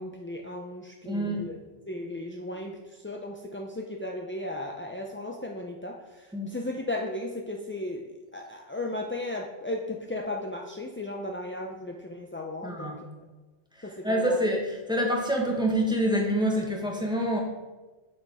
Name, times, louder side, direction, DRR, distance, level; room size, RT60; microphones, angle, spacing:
voice 1, 0.0-1.6 1.9-8.0 8.3-12.9 13.8-14.4, left 1 dB, 20° left, 0 dB, 0.3 m, -35 dB
voice 2, 1.0-1.5 6.3-6.5 12.6-13.0 14.0-17.4, equal, 5° right, -1 dB, 1.4 m, -26 dB
7.9 x 6.2 x 4.8 m, 1.2 s
omnidirectional pair, 1.1 m